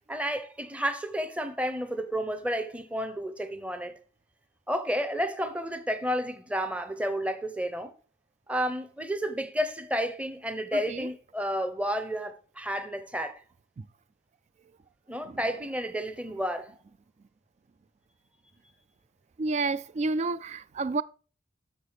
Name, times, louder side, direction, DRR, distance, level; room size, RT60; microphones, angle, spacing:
voice 1, 0.1-4.0 4.7-7.9 8.5-13.4 15.1-16.7, equal, 5° right, 0.8 m, -31 dB
voice 2, 19.4-21.0, right 3 dB, 40° right, 0.3 m, -29 dB
6.8 x 6.5 x 4.8 m
head